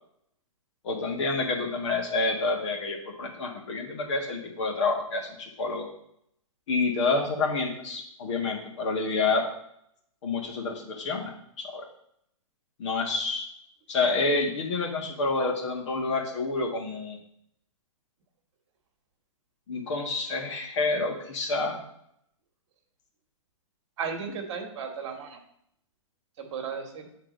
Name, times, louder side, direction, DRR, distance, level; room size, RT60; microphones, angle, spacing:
voice 1, 0.8-5.9 6.7-9.5 10.2-11.8 12.8-13.5 13.9-17.2 19.7-21.8, left 3 dB, 60° left, 1 dB, 1.8 m, -28 dB
voice 2, 24.0-25.4 26.4-27.1, right 6 dB, 55° right, 4 dB, 1.4 m, -35 dB
8.0 x 3.7 x 5.1 m, 0.73 s
hypercardioid pair, 125°, 18 cm